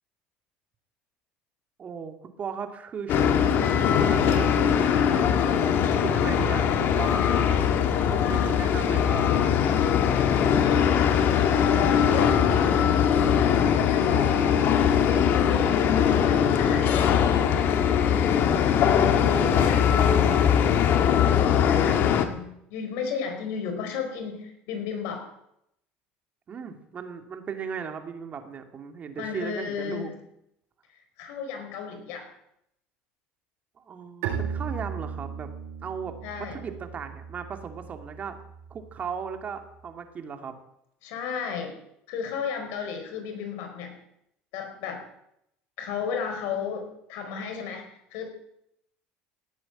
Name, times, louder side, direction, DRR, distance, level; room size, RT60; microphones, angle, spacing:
voice 1, 1.8-7.6 8.1-9.2 14.4-15.1 19.1-20.6 26.5-30.1 33.8-35.5 35.8-36.1 36.4-38.4 38.7-40.5, right 6 dB, 35° right, 6 dB, 2.4 m, -37 dB
sound 1, 3.1-22.2, left 8 dB, 55° left, 1.8 m, -21 dB
voice 2, 10.1-12.8 13.8-14.4 15.0-17.5 19.1-19.9 21.2-25.3 29.2-30.1 30.9-32.3 36.2-36.6 41.0-41.7 42.1-44.0 44.5-45.0 45.8-47.8 48.1-48.3, left 6 dB, 75° left, 5 dB, 4.4 m, -33 dB
Bowed string instrument, 34.2-39.8, right 7 dB, 85° right, 6.5 m, -37 dB
17.5 x 8.3 x 9.0 m, 0.78 s
supercardioid pair, 110°, 4 cm